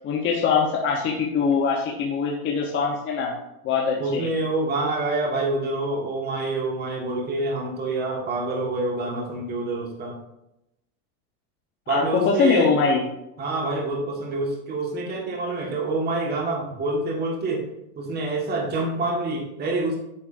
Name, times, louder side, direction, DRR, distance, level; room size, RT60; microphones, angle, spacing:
voice 1, 0.0-3.3 3.6-4.3 11.9-13.0, left 5 dB, 25° left, -1 dB, 0.9 m, -22 dB
voice 2, 4.0-10.2 11.9-12.7 13.4-17.6 18.0-20.0, right 2 dB, 20° right, 0 dB, 1.5 m, -27 dB
8.7 x 6.2 x 2.6 m, 0.86 s
supercardioid pair, 140°, 45 cm